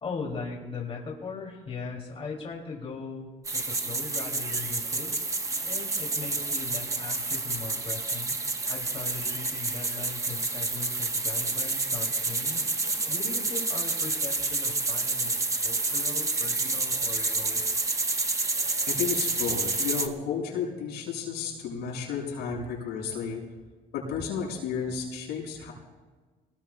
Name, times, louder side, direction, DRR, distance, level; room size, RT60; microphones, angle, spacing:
voice 1, 0.0-5.2 5.6-8.3 8.7-12.7 13.1-17.6, left 4 dB, 35° left, -1 dB, 2.8 m, -39 dB
sound 1, 3.4-20.1, right 3 dB, 20° right, 1.2 m, -29 dB
voice 2, 18.9-23.4 23.9-25.7, left 6 dB, 85° left, -2 dB, 6.3 m, -32 dB
26.0 x 19.0 x 2.3 m, 1.3 s
cardioid pair, 110°, 17 cm